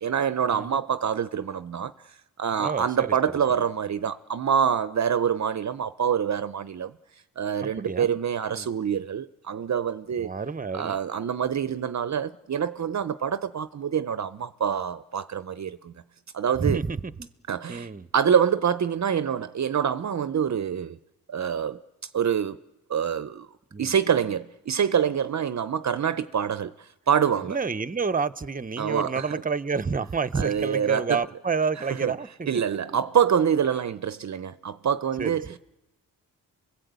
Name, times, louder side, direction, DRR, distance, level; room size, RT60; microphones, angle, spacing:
voice 1, 0.0-1.9 2.4-6.9 7.4-10.3 10.7-15.9 16.3-16.8 17.5-21.0 21.3-21.8 22.1-22.6 22.9-23.5 23.8-27.6 28.8-29.2 30.3-31.2 32.0-32.1 32.5-35.6, right 8 dB, 50° right, 0.8 m, -26 dB
voice 2, 2.5-3.1 7.6-8.2 8.5-8.7 10.2-11.0 16.6-17.3 17.7-18.1 23.7-23.9 27.4-32.6 35.2-35.3, right 5 dB, 25° right, 1.0 m, -29 dB
30.0 x 21.5 x 8.3 m
cardioid pair, 65°, 36 cm